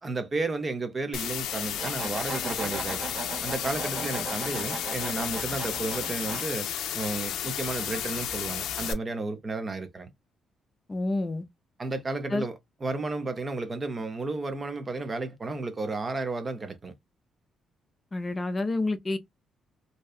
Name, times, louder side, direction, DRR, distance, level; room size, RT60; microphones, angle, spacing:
voice 1, 0.0-3.1 3.4-6.7 6.9-10.1 11.8-16.9, right 3 dB, 30° right, 0.6 m, -33 dB
sound 1, 1.1-8.9, left 9 dB, 85° left, 0.4 m, -33 dB
sound 2, 1.5-6.4, right 3 dB, 60° right, 1.0 m, -37 dB
voice 2, 10.9-11.4 12.3-12.5 18.1-19.2, left 2 dB, 25° left, 0.4 m, -28 dB
2.7 x 2.2 x 2.4 m
cardioid pair, 90°, 0 cm